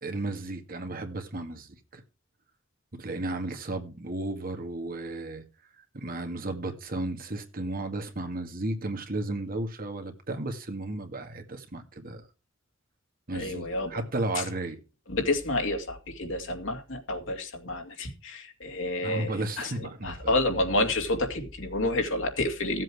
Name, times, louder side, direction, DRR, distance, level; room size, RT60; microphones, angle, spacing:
voice 1, 0.0-2.0 2.9-5.4 5.9-12.2 13.3-14.8 19.0-20.3, right 2 dB, 45° right, 1.9 m, -34 dB
voice 2, 13.3-14.0 14.3-14.4 15.1-22.8, left 2 dB, 70° left, 2.6 m, -29 dB
15.5 x 7.7 x 4.8 m
head